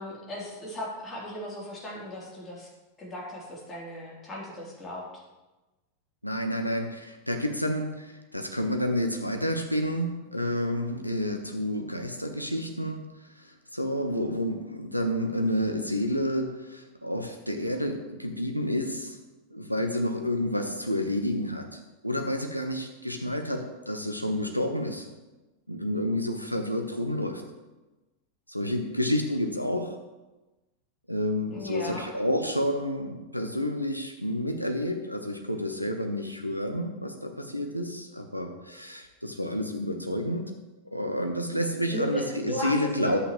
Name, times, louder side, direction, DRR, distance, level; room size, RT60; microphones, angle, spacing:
voice 1, 0.0-2.7 3.0-5.0 31.5-32.1 41.9-43.2, equal, 20° left, -4 dB, 3.2 m, -36 dB
voice 2, 6.2-13.1 13.4-19.2 19.5-25.1 25.7-27.4 28.5-29.9 31.1-40.5 40.9-43.2, equal, 90° left, 5 dB, 1.0 m, -29 dB
11.5 x 8.2 x 3.1 m, 1.1 s
figure-of-eight pair, 90°, 0 cm